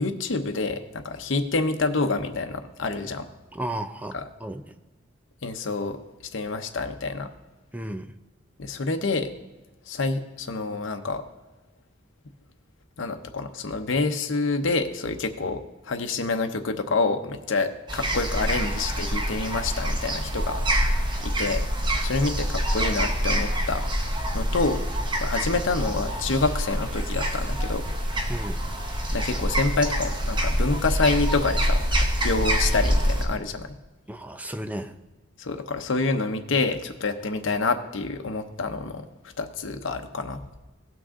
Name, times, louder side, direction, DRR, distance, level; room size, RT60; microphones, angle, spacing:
voice 1, 0.0-3.3 4.1-4.3 5.4-6.0 6.3-7.3 8.6-9.3 9.9-11.2 13.0-20.8 21.2-21.7 22.0-24.8 25.2-27.8 29.1-33.7 35.4-39.1 39.4-40.4, left 3 dB, 85° left, 6 dB, 0.8 m, -27 dB
voice 2, 3.5-4.8 7.7-8.1 28.3-28.6 34.1-35.0, right 1 dB, 10° right, 9 dB, 0.5 m, -34 dB
sound 1, 17.9-33.2, equal, 25° right, 1.1 m, -26 dB
17.0 x 6.1 x 3.7 m, 1.1 s
head